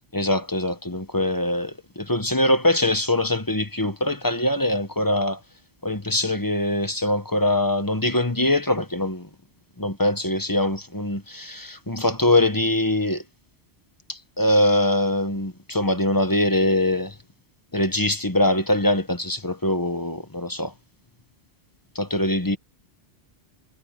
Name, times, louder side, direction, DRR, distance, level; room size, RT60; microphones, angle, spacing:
voice 1, 0.1-5.4 5.8-9.3 9.8-13.2 14.1-17.1 17.7-20.7 21.9-22.6, left 1 dB, 20° left, 1.3 m, -23 dB
omnidirectional pair, 1.2 m